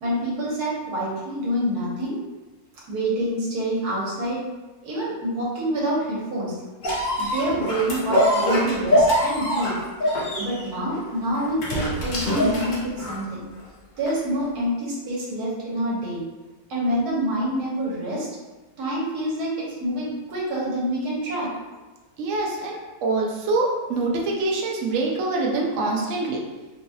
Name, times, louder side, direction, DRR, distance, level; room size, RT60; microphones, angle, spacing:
voice 1, 0.0-2.2 2.9-4.4 4.8-6.6 7.2-9.8 10.4-13.5 14.0-16.2 16.7-18.3 18.8-21.5, right 1 dB, 85° right, -6 dB, 1.5 m, -27 dB
sound 1, 6.8-13.3 14.1-14.2, equal, 55° left, 0.6 m, -23 dB
voice 2, 22.2-26.4, right 3 dB, 65° right, -2 dB, 0.8 m, -25 dB
3.7 x 2.3 x 2.7 m, 1.2 s
omnidirectional pair, 1.6 m